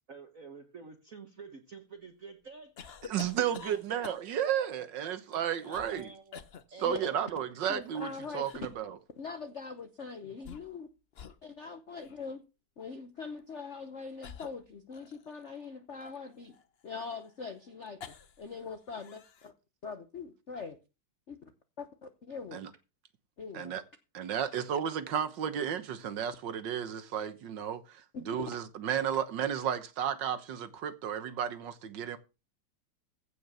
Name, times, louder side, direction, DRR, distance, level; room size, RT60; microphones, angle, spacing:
voice 1, 0.1-2.7 3.2-4.2 4.8-4.9 5.3-6.4 6.7-7.1, right 4 dB, 45° right, 1.5 m, -49 dB
sound 1, 2.8-4.5 5.3-6.0 6.3-6.6 7.8-8.8 10.2-10.9 11.1-11.4 12.0-12.2 13.3-13.5 14.2-15.4 16.0-18.5 18.8-19.5, left 7 dB, 75° left, 0.5 m, -49 dB
voice 2, 3.0-6.1 6.8-8.1 8.3-9.0 22.5-22.7 23.5-23.8 24.1-32.2, right 9 dB, 60° right, 1.7 m, -33 dB
voice 3, 7.7-8.5 9.2-10.9 11.4-12.4 12.8-16.6 16.8-19.5 19.8-20.8 21.3-21.4 21.8-22.6 23.4-23.7 28.1-28.5, left 4 dB, 50° left, 0.8 m, -42 dB
15.5 x 5.4 x 6.7 m
omnidirectional pair, 2.4 m